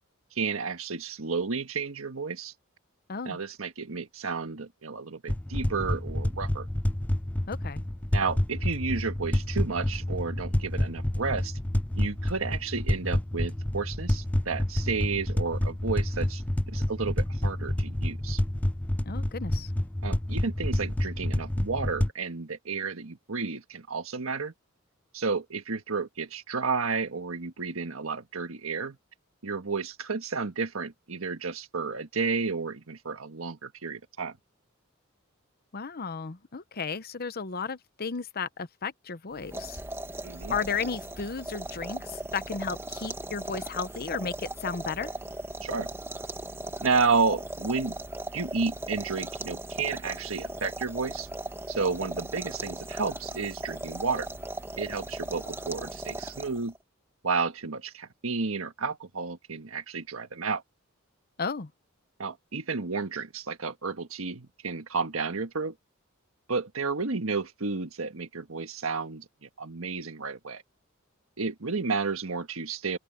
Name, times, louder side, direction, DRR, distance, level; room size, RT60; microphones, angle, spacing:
voice 1, 0.3-2.5 3.2-6.7 8.1-11.6 12.0-16.4 16.7-18.4 20.0-24.5 25.1-29.0 29.4-34.4 40.2-40.6 45.6-45.9 46.8-48.0 48.3-51.3 51.7-54.3 54.8-56.7 57.2-60.6 62.2-65.7 66.5-70.6 71.4-73.0, right 4 dB, 80° right, 1.6 m, -31 dB
sound 1, 5.3-22.1, left 1 dB, 5° left, 0.4 m, -29 dB
voice 2, 7.5-7.8 19.0-19.7 35.7-39.8 40.5-45.1 61.4-61.7, left 5 dB, 50° left, 0.9 m, -34 dB
sound 2, 39.4-56.8, right 1 dB, 10° right, 1.4 m, -38 dB
open air
head